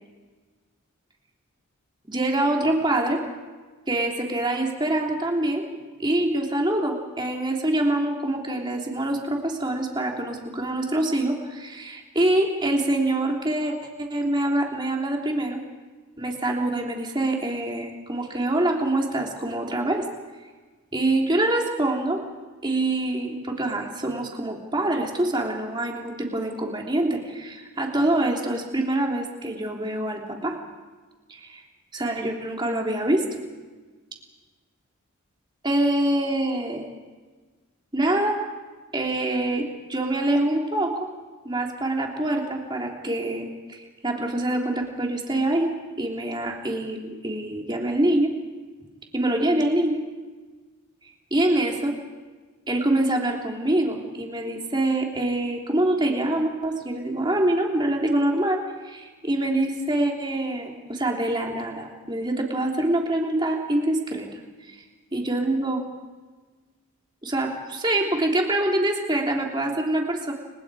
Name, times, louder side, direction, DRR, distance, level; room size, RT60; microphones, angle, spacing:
voice 1, 2.1-3.2 3.9-5.6 6.0-15.6 16.2-20.1 20.9-22.2 22.6-30.6 31.3-31.6 31.9-33.4 35.6-36.9 37.9-38.4 38.9-41.1 41.4-48.3 49.1-50.0 51.3-51.9 52.7-64.3 64.7-64.8 65.1-65.8 67.2-70.3, right 1 dB, 20° right, 0 dB, 3.3 m, -25 dB
29.5 x 26.0 x 5.0 m, 1.3 s
head